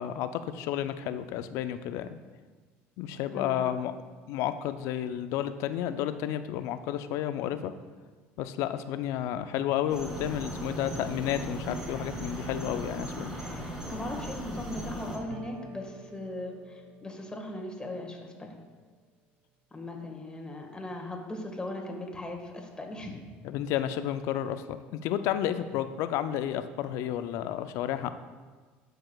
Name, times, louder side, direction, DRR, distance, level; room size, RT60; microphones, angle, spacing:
voice 1, 0.0-2.2 3.0-3.9 4.3-7.7 8.4-13.3 23.4-28.1, left 11 dB, 70° left, 11 dB, 0.4 m, -31 dB
voice 2, 3.3-3.7 13.9-18.5 19.7-23.2, left 1 dB, 15° left, 1 dB, 1.5 m, -38 dB
sound 1, 9.9-15.2, equal, 10° right, 2.1 m, -37 dB
sound 2, 15.3-18.8, right 6 dB, 50° right, 0.4 m, -51 dB
12.0 x 4.7 x 2.3 m, 1.4 s
supercardioid pair, 80°, 5 cm